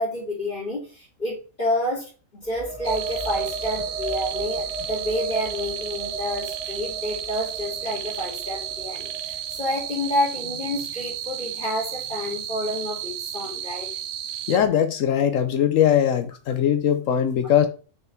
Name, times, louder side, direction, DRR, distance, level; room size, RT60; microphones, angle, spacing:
voice 1, 0.0-13.9, left 1 dB, 40° left, 2.9 m, -29 dB
sound 1, 2.4-10.0, right 4 dB, 5° right, 0.6 m, -34 dB
sound 2, 2.8-14.6, right 10 dB, 85° right, 1.0 m, -33 dB
voice 2, 14.5-17.7, left 9 dB, 75° left, 1.1 m, -20 dB
6.3 x 5.4 x 3.5 m
omnidirectional pair, 1.4 m